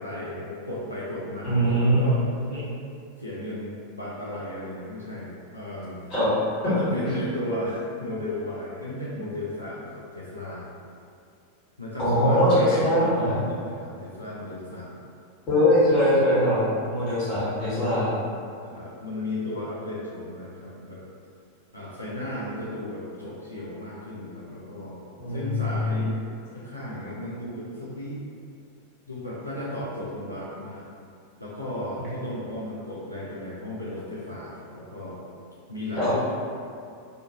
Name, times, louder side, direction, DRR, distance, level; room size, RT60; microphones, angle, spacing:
voice 1, 0.0-2.2 3.2-6.0 6.6-10.7 11.8-15.0 17.3-18.3 18.6-21.0 21.7-25.0 25.3-26.1 26.5-28.2 29.1-30.9 31.4-35.2 35.7-36.3, left 1 dB, 85° left, -8 dB, 0.4 m, -34 dB
voice 2, 1.4-2.0 2.5-2.6 6.1-6.3 12.0-13.4 15.5-16.6 16.9-18.1 25.2-26.1 36.0-36.1, equal, 30° left, -12 dB, 1.4 m, -22 dB
2.5 x 2.4 x 2.6 m, 2.4 s
figure-of-eight pair, 90°, 0 cm